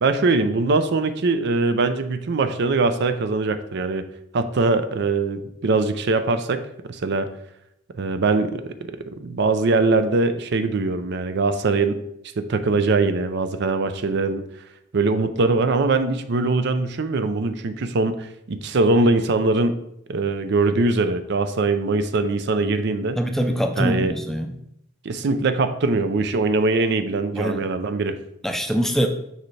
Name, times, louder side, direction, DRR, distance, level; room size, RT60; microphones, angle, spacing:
voice 1, 0.0-4.0 4.3-6.6 6.9-7.3 8.0-12.0 12.4-14.4 14.9-19.7 20.1-23.2 23.8-24.1 25.0-28.2, right 3 dB, 60° right, 10 dB, 0.5 m, -22 dB
voice 2, 23.2-24.6 27.3-27.7 28.4-29.1, equal, ahead, 5 dB, 0.5 m, -23 dB
6.4 x 5.3 x 3.2 m, 0.80 s
head